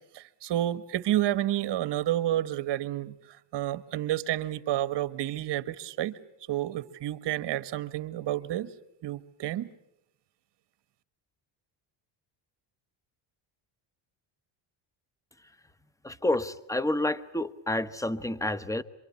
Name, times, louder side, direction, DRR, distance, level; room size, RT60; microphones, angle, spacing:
voice 1, 0.1-6.2 6.5-8.7 9.0-9.7, right 13 dB, 60° right, 13 dB, 1.5 m, -30 dB
voice 2, 16.0-18.8, left 1 dB, 5° left, 15 dB, 1.1 m, -29 dB
26.5 x 24.5 x 8.4 m, 0.82 s
cardioid pair, 110°, 47 cm